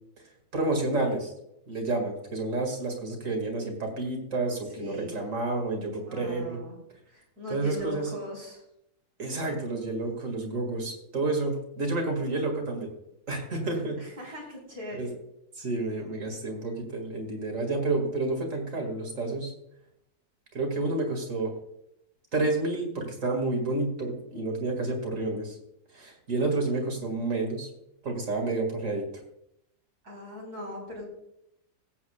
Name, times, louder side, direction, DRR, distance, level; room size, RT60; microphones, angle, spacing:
voice 1, 0.5-1.3 1.7-6.6 7.5-8.1 9.2-12.9 13.3-14.0 14.9-15.1 15.6-19.5 20.5-21.5 22.3-25.6 25.9-27.7 28.0-29.0, right 2 dB, 55° right, 2 dB, 2.5 m, -30 dB
voice 2, 4.8-5.1 6.1-6.8 7.1-8.6 14.0-15.1 30.0-31.0, left 1 dB, 75° right, -3 dB, 4.5 m, -39 dB
19.0 x 8.3 x 2.3 m, 0.80 s
omnidirectional pair, 1.6 m